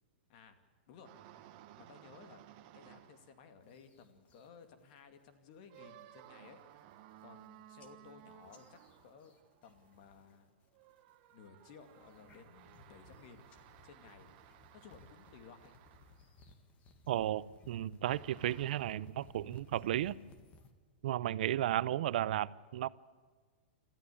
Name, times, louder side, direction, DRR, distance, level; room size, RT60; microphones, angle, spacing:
voice 1, 0.9-2.4 2.7-6.6 7.2-9.3 9.6-10.5 11.3-13.5 13.8-14.3 14.7-15.8, left 6 dB, 45° left, 2.4 m, -57 dB
sound 1, 1.0-3.5 4.4-4.5 5.7-10.3 10.7-16.5 18.0-19.1, right 13 dB, 40° right, 1.4 m, -59 dB
sound 2, 3.7-4.5 4.9-5.3 5.6-6.0 6.5-6.6 6.8-7.5 7.8-10.4 10.6-11.1 11.7-20.7, left 3 dB, 25° left, 1.8 m, -61 dB
voice 2, 17.1-20.2 21.0-22.9, right 12 dB, 65° right, 0.6 m, -34 dB
27.5 x 13.5 x 8.6 m
supercardioid pair, 160°, 5 cm